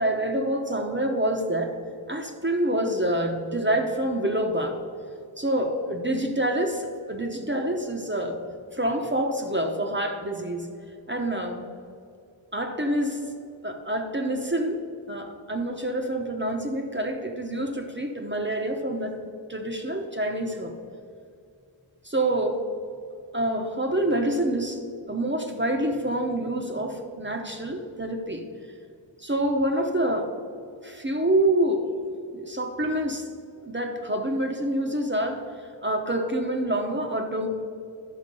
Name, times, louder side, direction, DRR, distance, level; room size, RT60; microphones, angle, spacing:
voice 1, 0.0-1.7 2.1-4.8 5.4-8.4 8.7-10.7 11.1-11.7 12.5-13.3 13.6-19.2 19.5-20.8 22.0-22.6 23.3-24.8 25.1-28.4 29.2-30.3 30.8-31.9 32.3-33.3 33.6-35.4 35.8-37.5, right 1 dB, 25° right, 3 dB, 0.9 m, -27 dB
11.5 x 5.8 x 5.3 m, 2.4 s
wide cardioid pair, 55°, 50 cm